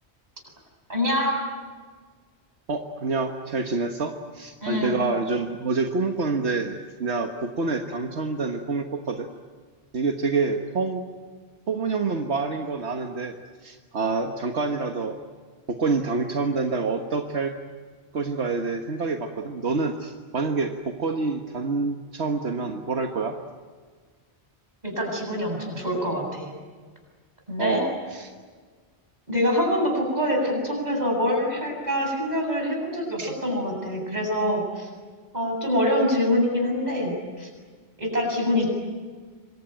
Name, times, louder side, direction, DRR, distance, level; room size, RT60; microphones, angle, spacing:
voice 1, 0.9-1.4 4.6-4.9 24.8-26.5 27.5-27.8 29.3-34.9 35.3-37.5 38.0-38.7, left 1 dB, 40° right, 1 dB, 8.1 m, -25 dB
voice 2, 2.7-9.3 9.9-11.1 11.7-13.4 13.6-15.2 15.7-17.5 18.1-23.4 27.6-28.3 33.2-33.4, right 4 dB, 80° right, 4 dB, 1.7 m, -27 dB
27.0 x 23.5 x 9.2 m, 1.5 s
omnidirectional pair, 1.1 m